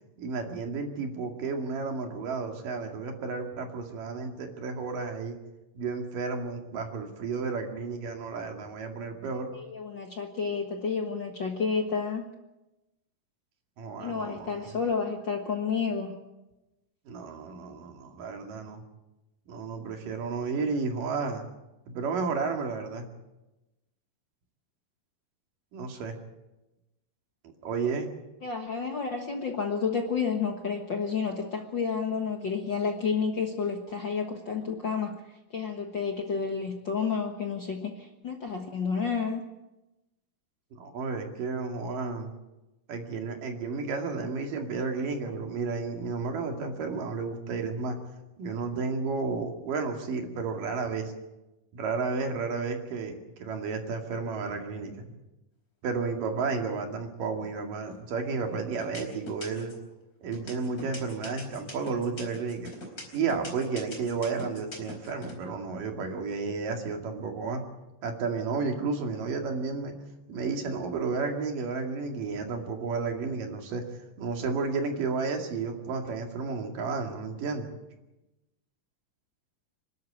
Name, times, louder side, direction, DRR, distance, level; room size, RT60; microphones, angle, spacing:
voice 1, 0.2-5.4 5.8-9.5 13.8-14.7 17.1-18.8 19.5-21.4 21.9-23.1 25.7-26.2 27.6-28.1 40.7-42.3 42.9-48.0 48.4-51.1 51.7-55.1 55.8-59.7 60.2-62.7 63.1-67.6 68.0-70.0 70.3-73.8 74.2-77.7, right 4 dB, 75° right, 3 dB, 3.9 m, -32 dB
voice 2, 9.5-12.2 14.0-16.1 28.4-35.1 35.5-39.4, left 5 dB, 50° left, 3 dB, 1.5 m, -30 dB
sound 1, 57.9-58.3 58.8-59.8 60.3-65.3, left 2 dB, 25° left, 4.6 m, -42 dB
26.5 x 12.5 x 8.8 m, 1.0 s
omnidirectional pair, 3.9 m